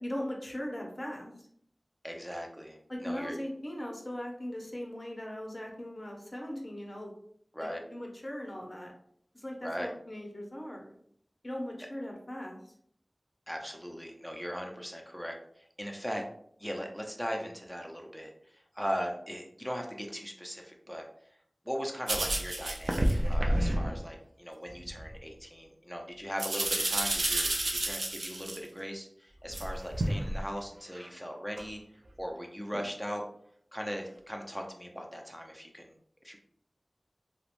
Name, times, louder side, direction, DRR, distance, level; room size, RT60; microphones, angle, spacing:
voice 1, 0.0-1.3 2.9-7.1 7.6-8.9 9.3-10.9 11.4-12.7, left 1 dB, 40° left, 0 dB, 0.7 m, -39 dB
voice 2, 2.0-3.4 7.5-7.8 9.6-9.9 13.5-16.2 16.6-21.1 21.6-31.8 32.2-33.2 33.7-36.0 36.2-36.4, equal, ahead, 2 dB, 0.5 m, -39 dB
sound 1, 22.1-24.0 24.7-25.2 26.4-28.6 29.5-30.4 30.9-31.1 31.6-31.7 32.7-32.8, right 1 dB, 85° right, 0.4 m, -30 dB
2.9 x 2.1 x 2.5 m, 0.67 s
wide cardioid pair, 50°, 0 cm